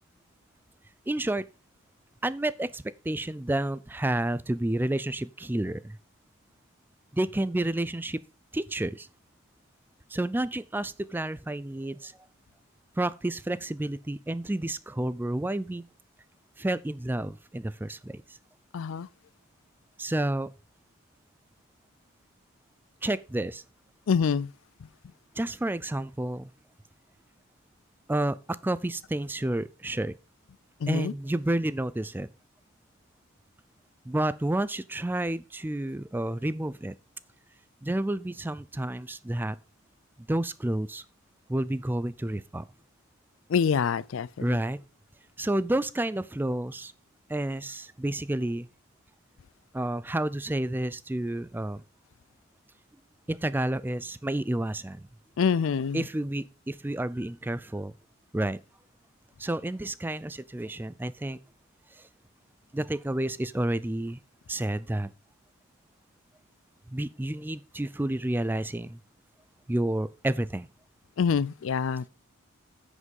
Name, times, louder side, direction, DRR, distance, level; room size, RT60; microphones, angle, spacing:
voice 1, 1.1-1.4 2.2-6.0 7.1-8.2 8.5-9.1 10.1-12.1 13.0-15.8 16.6-18.2 20.0-20.5 23.0-23.6 25.4-26.5 28.1-30.1 30.9-32.3 34.1-37.0 37.8-39.6 40.2-41.0 41.5-42.6 44.4-44.8 45.4-46.9 47.3-48.7 49.7-51.8 53.3-55.1 55.9-57.9 58.3-58.6 59.4-61.4 62.0-62.1 62.7-64.2 64.5-65.1 66.9-69.0 69.7-70.7, right 1 dB, 10° right, 0.3 m, -30 dB
voice 2, 18.7-19.1 24.1-24.5 30.8-31.1 43.5-44.6 55.4-56.0 71.2-72.1, left 6 dB, 65° left, 0.4 m, -26 dB
9.7 x 5.2 x 5.3 m
head